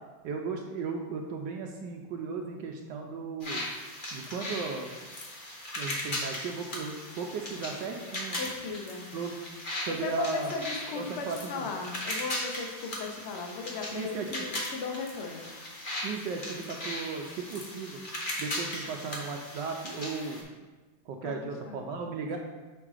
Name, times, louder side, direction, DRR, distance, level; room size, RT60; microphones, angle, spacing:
voice 1, 0.2-3.6 4.1-4.9 5.8-8.4 9.1-9.4 9.9-10.5 11.0-11.6 13.9-14.3 16.0-18.0 18.4-20.5 21.1-22.4, right 5 dB, 75° right, 2 dB, 1.1 m, -36 dB
sound 1, 3.4-20.4, left 1 dB, 40° left, 0.8 m, -38 dB
voice 2, 8.4-9.0 9.9-15.5 21.2-21.8, left 4 dB, 80° left, 2 dB, 0.6 m, -37 dB
6.6 x 3.6 x 4.8 m, 1.2 s
omnidirectional pair, 2.3 m